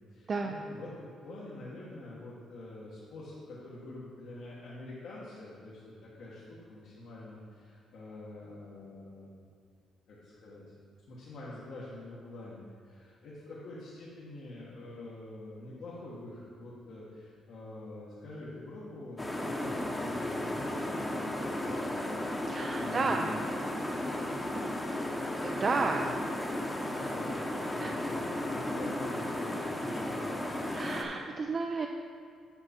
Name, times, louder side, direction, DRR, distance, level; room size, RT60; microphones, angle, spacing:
voice 1, 0.1-0.9 1.2-9.5 10.1-10.6 11.1-21.9 22.7-23.4 25.8-26.2 27.0-27.3 27.6-30.3, left 2 dB, 70° left, -7 dB, 1.3 m, -46 dB
sound 1, 19.2-31.0, left 1 dB, 15° left, 0.9 m, -34 dB
voice 2, 22.5-23.3 25.4-26.1 27.8-27.9 30.7-31.9, right 4 dB, 40° right, 3 dB, 0.4 m, -32 dB
7.9 x 5.6 x 4.3 m, 2.1 s
cardioid pair, 90°, 0 cm